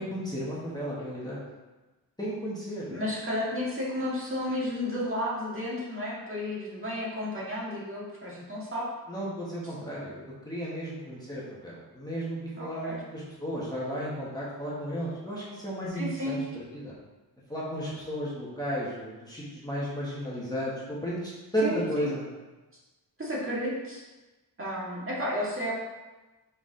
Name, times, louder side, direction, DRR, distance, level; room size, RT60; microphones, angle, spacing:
voice 1, 0.0-1.4 2.2-3.0 9.1-16.9 17.5-22.3, equal, 10° left, -8 dB, 1.4 m, -34 dB
voice 2, 2.9-8.9 12.6-13.0 15.9-16.4 21.6-22.1 23.2-24.0 24.6-25.7, left 1 dB, 30° right, -6 dB, 1.8 m, -32 dB
5.7 x 4.9 x 3.8 m, 1.2 s
wide cardioid pair, 130°, 40 cm